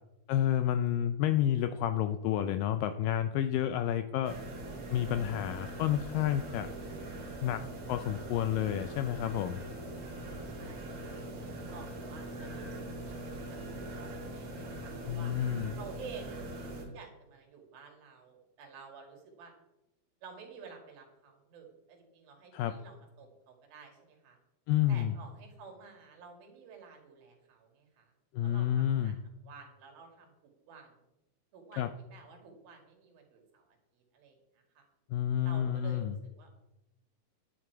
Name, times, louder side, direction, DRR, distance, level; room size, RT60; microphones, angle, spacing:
voice 1, 0.3-4.4 4.9-6.7 7.4-9.6 15.1-15.7 22.5-22.7 24.7-25.2 28.3-29.2 31.8-31.9 35.1-36.1, left 11 dB, 85° left, 10 dB, 2.0 m, -30 dB
sound 1, 4.2-16.8, right 1 dB, 40° right, 2.6 m, -42 dB
voice 2, 10.5-13.2 13.5-15.3 15.7-19.5 20.2-24.4 24.9-28.1 28.4-31.0 31.5-33.7 33.9-34.4 34.8-34.9 35.4-36.5, right 5 dB, 70° right, 2 dB, 3.7 m, -52 dB
10.5 x 9.9 x 4.6 m, 0.95 s
omnidirectional pair, 4.4 m